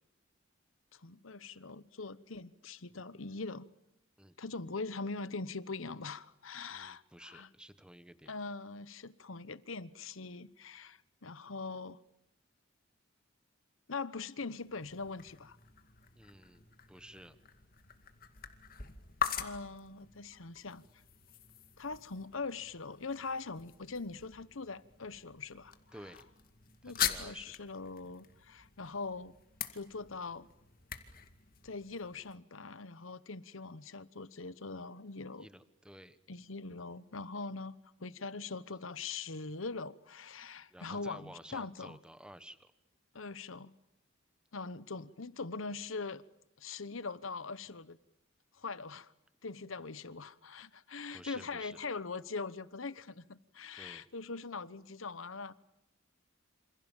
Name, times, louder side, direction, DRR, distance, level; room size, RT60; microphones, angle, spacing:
voice 1, 0.9-3.7 4.4-7.5 8.3-12.0 13.9-15.6 19.4-20.8 21.8-25.7 26.8-29.3 29.7-30.5 31.6-35.5 36.3-42.0 43.1-43.7 44.5-46.2 46.6-48.0 48.5-49.1 49.4-55.5, left 4 dB, 80° left, 1.1 m, -42 dB
voice 2, 6.7-8.3 16.1-17.4 25.9-26.2 26.8-27.6 35.4-36.2 40.7-42.7 51.1-51.8 53.7-54.1, right 1 dB, 5° right, 1.3 m, -52 dB
sound 1, 14.5-32.4, left 8 dB, 45° left, 2.3 m, -43 dB
28.0 x 27.0 x 7.4 m
head